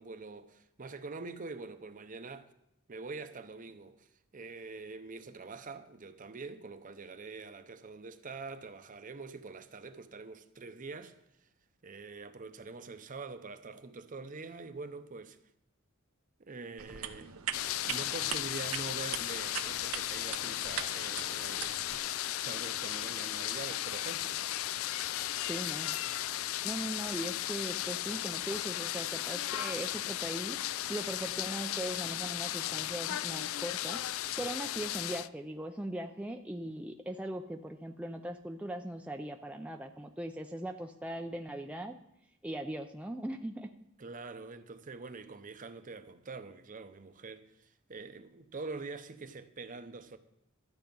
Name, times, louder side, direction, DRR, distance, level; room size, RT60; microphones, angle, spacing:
voice 1, 0.0-2.5 2.9-11.2 11.8-15.4 16.4-17.3 17.9-22.0 22.3-24.4 34.4-34.6 44.0-50.2, right 3 dB, 40° right, 0.7 m, -45 dB
sound 1, 16.8-22.0, right 9 dB, 85° right, 0.8 m, -41 dB
sound 2, 17.5-35.3, left 13 dB, 70° left, 0.3 m, -35 dB
voice 2, 25.5-26.0 26.6-30.6 30.9-34.0 34.4-42.0 42.4-43.7, right 1 dB, 5° right, 0.4 m, -39 dB
12.5 x 8.0 x 5.4 m
head